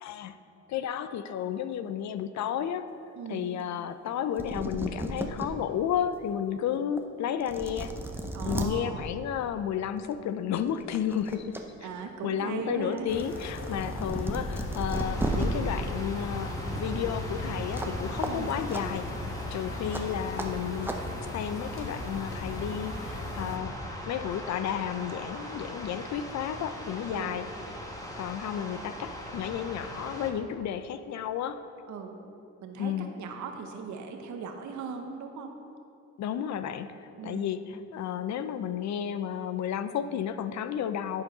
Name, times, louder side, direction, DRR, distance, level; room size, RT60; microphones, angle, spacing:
voice 1, 0.0-0.4 0.7-2.9 3.3-7.9 8.4-11.6 12.2-19.0 19.5-20.9 21.3-23.7 24.1-27.5 28.2-31.6 32.8-33.1 36.2-41.2, left 9 dB, 65° left, 11 dB, 0.5 m, -32 dB
voice 2, 3.2-3.5 8.3-9.0 11.8-13.1 18.3-18.5 27.1-27.4 31.9-32.2 32.6-35.5 37.2-37.5, right 5 dB, 70° right, 4 dB, 1.0 m, -38 dB
sound 1, 4.1-4.2 4.4-5.5 6.0-6.1 7.0-7.1 7.4-8.7 10.0-10.2 10.6-11.6 12.0-15.5 17.7-17.9 18.2-18.3 18.7-18.8 19.9-20.0 20.4-20.5 20.8-21.0, right 1 dB, 5° right, 0.7 m, -34 dB
sound 2, 13.1-23.6, left 2 dB, 45° left, 1.1 m, -39 dB
sound 3, 14.9-30.3, equal, 10° left, 1.2 m, -39 dB
10.5 x 4.6 x 5.5 m, 2.7 s
cardioid pair, 90°, 30 cm